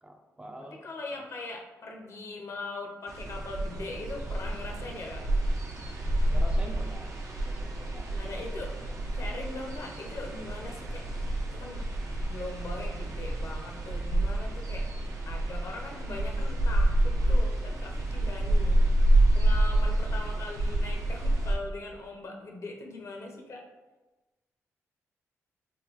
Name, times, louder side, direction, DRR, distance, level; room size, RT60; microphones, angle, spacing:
voice 1, 0.0-0.8 6.3-7.2 7.4-8.5, right 1 dB, 15° right, 2 dB, 0.4 m, -45 dB
voice 2, 0.8-5.3 8.1-8.7 9.1-11.0 11.5-11.8 12.2-14.8 15.2-18.8 19.3-23.6, left 2 dB, 55° left, 1 dB, 0.6 m, -40 dB
sound 1, 3.1-21.5, right 1 dB, 65° right, 0.6 m, -28 dB
3.8 x 2.2 x 2.9 m, 1.1 s
cardioid pair, 70°, 6 cm